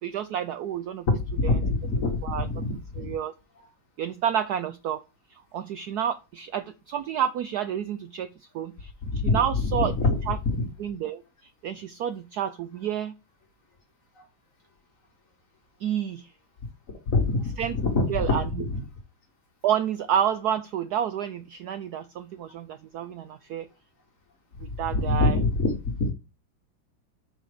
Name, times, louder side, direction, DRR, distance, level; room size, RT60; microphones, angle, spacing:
voice 1, 0.0-1.1 1.4-1.6 2.2-2.5 3.0-3.3 4.0-5.0 5.3-8.3 8.5-8.9 9.2-9.9 10.3-10.4 10.8-13.1 15.8-16.3 17.6-17.8 18.1-18.6 19.6-23.7 24.6-25.4, right 9 dB, 75° right, 0.9 m, -29 dB
voice 2, 1.3-3.2 9.0-9.4 10.0-10.2 10.4-10.7 17.1-18.8 24.6-26.1, left 3 dB, 45° left, 1.8 m, -25 dB
5.8 x 4.3 x 5.0 m
omnidirectional pair, 2.2 m